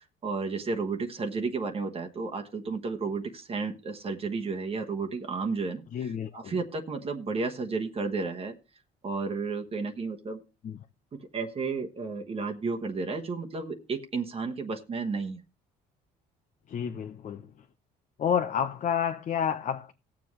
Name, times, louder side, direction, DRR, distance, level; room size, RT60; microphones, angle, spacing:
voice 1, 0.0-8.5 9.0-10.4 11.3-15.4, right 4 dB, 35° right, 1.2 m, -32 dB
voice 2, 5.9-6.5 10.6-10.8 16.7-17.5 18.2-19.9, left 8 dB, 45° left, 0.8 m, -30 dB
19.0 x 7.4 x 3.2 m
cardioid pair, 110°, 17 cm